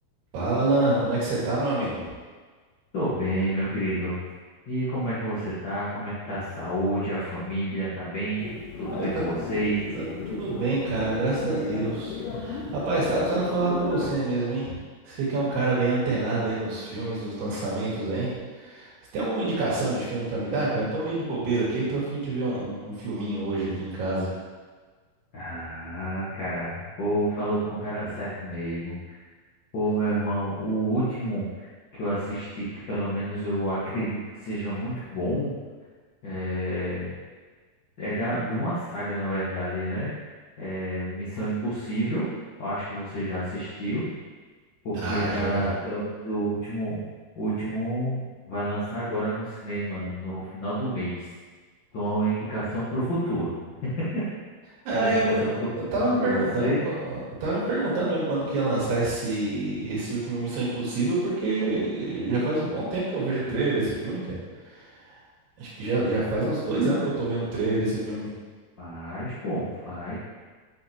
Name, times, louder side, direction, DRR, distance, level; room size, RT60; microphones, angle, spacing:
voice 1, 0.3-2.0 8.9-9.2 9.9-14.8 15.1-24.3 45.0-45.7 54.9-64.4 64.6-65.2 65.6-68.3, right 2 dB, 80° right, -7 dB, 3.6 m, -27 dB
voice 2, 2.9-4.2 4.7-8.5 8.8-9.8 25.3-29.2 29.7-31.7 31.9-35.5 36.2-37.1 38.0-40.1 40.6-42.3 42.6-44.0 44.8-47.0 47.3-51.2 51.9-53.5 53.8-54.2 55.0-55.7 56.2-56.8 68.8-70.1, right 1 dB, 60° left, -12 dB, 1.2 m, -29 dB
sound 1, 8.4-14.1, left 5 dB, 90° left, 2.7 m, -35 dB
7.7 x 6.4 x 2.9 m, 1.4 s
omnidirectional pair, 4.5 m